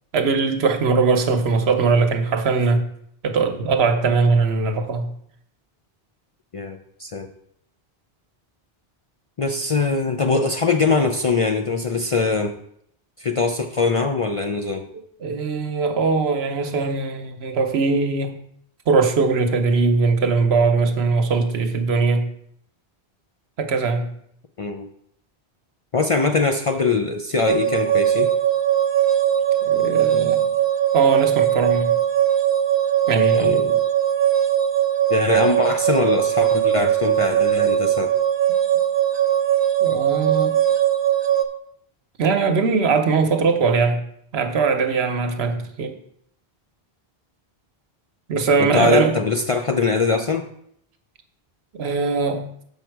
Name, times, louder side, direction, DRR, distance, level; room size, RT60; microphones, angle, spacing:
voice 1, 0.1-2.8 3.2-5.1 15.2-18.4 18.9-22.3 23.6-24.1 29.7-30.5 30.9-31.9 33.1-33.5 39.8-40.6 42.2-44.0 44.3-45.9 48.3-49.2 51.8-52.5, right 4 dB, 80° right, 8 dB, 1.1 m, -20 dB
voice 2, 6.5-7.3 9.4-12.6 13.2-14.9 24.6-24.9 25.9-28.3 33.3-33.8 35.1-38.2 48.6-50.5, left 4 dB, 50° left, 5 dB, 0.4 m, -22 dB
sound 1, 27.5-41.4, right 11 dB, 35° right, 0.5 m, -20 dB
7.2 x 5.4 x 4.6 m, 0.68 s
omnidirectional pair, 1.1 m